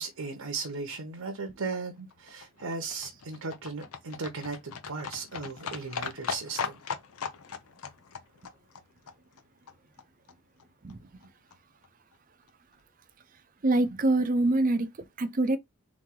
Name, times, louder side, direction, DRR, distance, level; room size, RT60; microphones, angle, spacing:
voice 1, 0.0-6.8, right 4 dB, 75° right, 0.8 m, -37 dB
Livestock farm animals working animals, 1.8-10.0 10.3-10.4 10.6-10.7 10.9-11.0 11.2-11.3 11.5-11.6 11.8-11.9 12.1-12.2 12.5-12.6, left 6 dB, 80° left, 0.6 m, -39 dB
voice 2, 13.6-14.9 15.2-15.6, right 2 dB, 35° right, 0.5 m, -24 dB
3.6 x 3.1 x 3.7 m
head